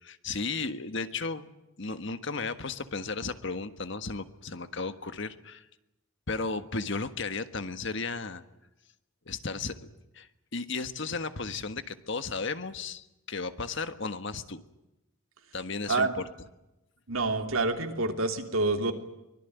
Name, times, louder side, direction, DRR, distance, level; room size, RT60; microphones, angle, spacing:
voice 1, 0.0-1.5 1.8-5.7 6.3-8.4 9.3-9.9 10.1-14.6 15.5-16.2, left 4 dB, 55° left, 10 dB, 1.5 m, -34 dB
voice 2, 15.9-16.2 17.1-18.9, right 3 dB, 70° right, 5 dB, 3.0 m, -27 dB
24.0 x 21.5 x 9.3 m, 0.92 s
head